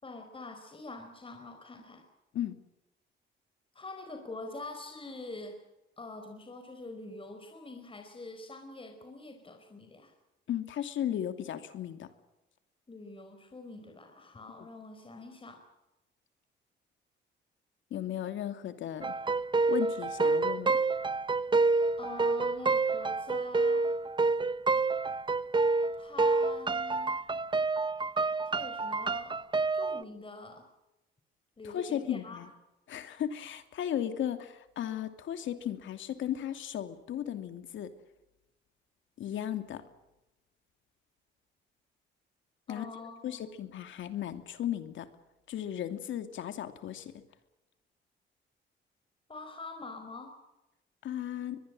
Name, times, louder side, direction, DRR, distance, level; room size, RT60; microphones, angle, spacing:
voice 1, 0.0-2.0 3.7-5.6 6.0-10.1 12.9-15.6 22.0-23.9 26.0-27.1 28.4-29.4 29.7-30.7 31.6-32.4 42.7-43.5 49.3-50.4, left 2 dB, 25° left, 5 dB, 4.8 m, -45 dB
voice 2, 10.5-12.1 14.6-14.7 17.9-19.1 19.7-20.8 31.7-32.5 32.9-37.9 39.2-39.8 42.7-42.9 43.2-45.1 45.5-47.1 51.0-51.6, left 10 dB, 75° left, 9 dB, 2.7 m, -35 dB
sound 1, 19.0-30.0, right 3 dB, 25° right, 0.9 m, -28 dB
23.5 x 22.0 x 7.7 m, 0.97 s
cardioid pair, 90°, 20 cm